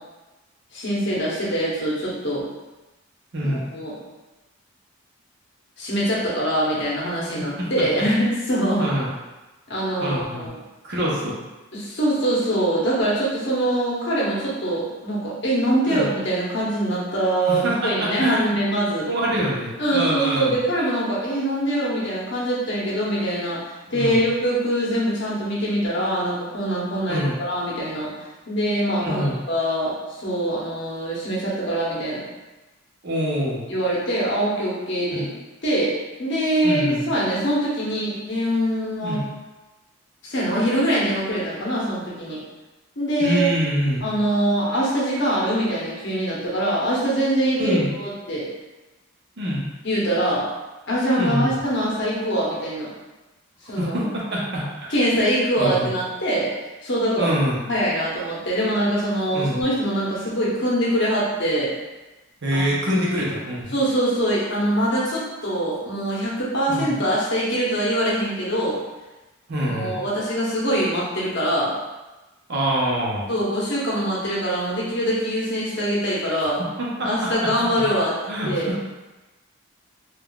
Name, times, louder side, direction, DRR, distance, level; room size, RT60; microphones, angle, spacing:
voice 1, 0.7-2.5 3.4-3.9 5.8-8.9 9.7-10.5 11.7-19.1 19.8-28.1 28.5-32.2 33.7-35.3 35.6-39.2 40.2-42.4 43.0-43.5 44.0-48.5 49.8-50.5 50.9-52.9 53.6-53.9 54.9-56.5 56.8-57.3 57.7-61.7 62.5-63.2 63.7-68.8 69.6-71.7 73.3-76.6 77.0-78.2 78.4-78.7, right 1 dB, 55° left, -6 dB, 0.9 m, -23 dB
voice 2, 3.3-3.6 7.6-7.7 8.8-9.1 10.0-10.5 10.8-11.4 15.9-16.1 17.5-18.6 19.1-20.6 23.9-24.2 27.1-27.3 29.0-29.4 33.0-33.7 35.1-35.3 36.6-37.1 39.0-39.3 43.2-44.1 47.6-47.9 49.4-49.7 51.2-51.5 53.7-54.9 55.2-55.3 55.6-55.9 57.2-57.6 59.3-59.6 62.4-63.7 66.7-67.0 69.5-70.0 72.5-73.3 76.8-77.1 77.4-77.8 78.3-78.9, equal, 55° right, -5 dB, 0.8 m, -25 dB
3.6 x 2.4 x 2.3 m, 1.1 s
head